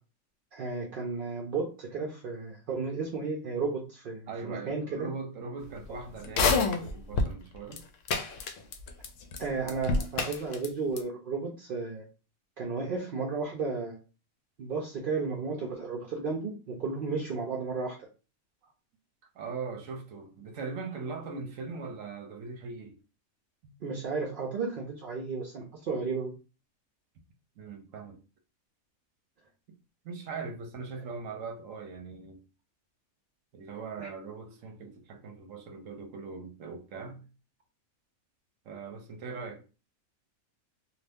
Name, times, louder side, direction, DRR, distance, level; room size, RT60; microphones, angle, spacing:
voice 1, 0.5-5.1 9.4-12.0 12.6-14.0 14.6-18.0 23.8-26.3 34.0-34.1, right 4 dB, 50° right, 0.6 m, -33 dB
voice 2, 4.3-7.8 18.6-18.7 19.3-23.0 23.6-23.7 27.6-28.2 30.0-32.4 33.5-37.3 38.7-39.6, right 4 dB, 70° right, 1.0 m, -40 dB
sound 1, 6.2-7.3 7.7-7.8 8.1-9.1 9.3-9.4 9.7-10.7 11.0-11.1, left 4 dB, 70° left, 0.9 m, -27 dB
2.6 x 2.5 x 3.4 m
omnidirectional pair, 1.5 m